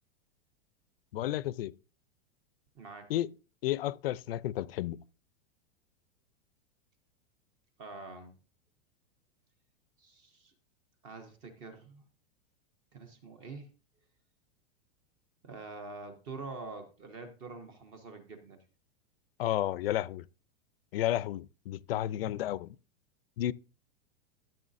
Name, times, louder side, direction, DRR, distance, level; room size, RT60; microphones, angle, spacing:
voice 1, 1.1-1.7 3.1-3.3 3.6-5.0 19.4-20.2 20.9-22.8 23.4-23.5, left 13 dB, 65° left, 0.5 m, -32 dB
voice 2, 2.8-3.1 7.8-8.4 10.0-10.5 11.0-12.0 12.9-13.7 15.4-18.6, right 3 dB, 10° right, 0.3 m, -45 dB
13.5 x 7.7 x 2.5 m
supercardioid pair, 175°, 32 cm